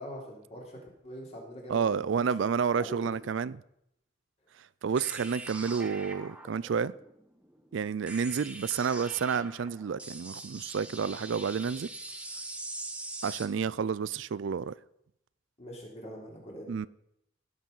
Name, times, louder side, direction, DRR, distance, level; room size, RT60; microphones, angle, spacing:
voice 1, 0.0-2.1 2.4-2.5 2.7-3.2 15.6-16.7, equal, 30° left, 3.4 m, -43 dB
voice 2, 1.7-3.6 4.8-6.9 7.7-11.9 13.2-14.7 16.7-16.9, right 6 dB, 65° right, 0.4 m, -30 dB
sound 1, 5.0-13.5, right 2 dB, 5° right, 1.1 m, -43 dB
16.0 x 7.4 x 5.5 m
head